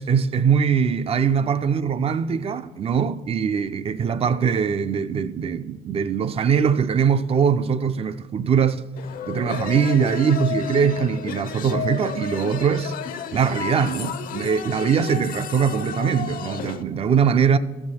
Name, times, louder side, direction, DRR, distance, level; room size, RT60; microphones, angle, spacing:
voice 1, 0.0-8.9 9.3-12.9 13.3-17.6, right 6 dB, 35° right, 0.4 m, -22 dB
sound 1, 9.0-16.8, left 8 dB, 55° left, 0.5 m, -32 dB
13.5 x 6.6 x 4.3 m
cardioid pair, 110°, 17 cm